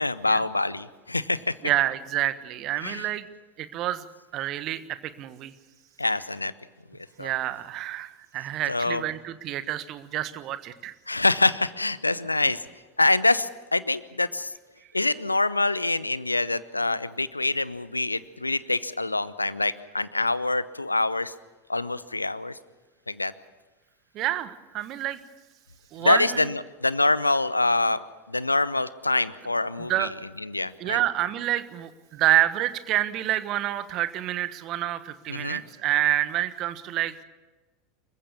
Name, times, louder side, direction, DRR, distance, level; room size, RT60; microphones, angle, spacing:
voice 1, 0.0-1.5 2.8-3.0 6.0-6.5 7.2-7.3 8.7-9.0 11.1-12.6 13.0-14.5 14.9-21.3 21.7-22.5 23.1-23.3 26.0-28.0 28.3-30.1 30.5-31.0 35.3-35.6, left 2 dB, 85° left, 18 dB, 0.7 m, -25 dB
voice 2, 1.6-3.3 3.6-4.1 4.3-5.5 7.2-10.9 24.1-25.2 25.9-26.4 29.8-30.1 30.8-37.1, right 13 dB, 45° right, 13 dB, 1.3 m, -28 dB
27.0 x 15.0 x 7.1 m, 1.2 s
figure-of-eight pair, 80°, 0 cm